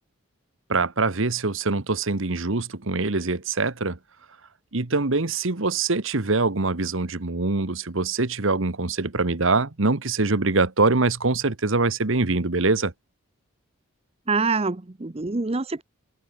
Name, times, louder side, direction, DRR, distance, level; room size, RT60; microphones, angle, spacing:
voice 1, 0.7-4.0 4.7-12.9, right 3 dB, 65° right, 1.3 m, -24 dB
voice 2, 14.3-15.8, right 3 dB, 30° right, 0.7 m, -25 dB
open air
head